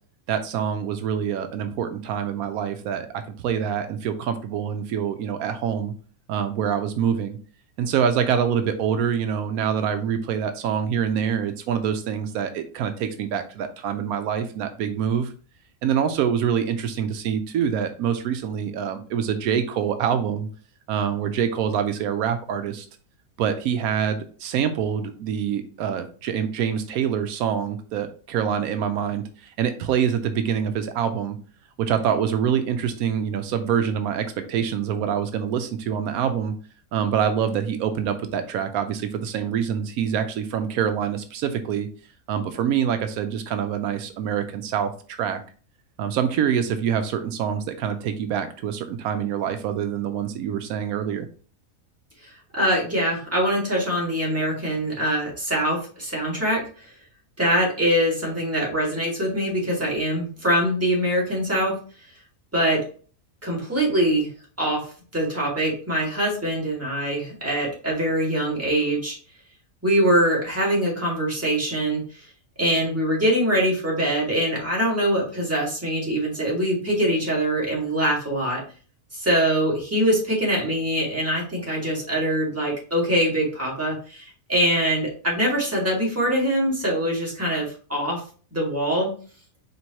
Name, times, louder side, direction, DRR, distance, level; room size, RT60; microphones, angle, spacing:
voice 1, 0.3-5.9 6.3-7.4 7.8-15.3 15.8-20.5 20.9-22.9 23.4-31.4 31.8-36.5 36.9-41.9 42.3-45.4 46.0-51.3, right 8 dB, 85° right, 8 dB, 1.0 m, -25 dB
voice 2, 52.2-56.9 57.4-61.7 62.5-62.8 63.4-64.3 64.6-64.8 65.1-69.2 69.8-72.3 72.6-78.6 79.1-88.2 88.5-89.1, right 1 dB, 10° right, -4 dB, 1.6 m, -23 dB
4.5 x 3.4 x 2.8 m, 0.40 s
omnidirectional pair, 1.5 m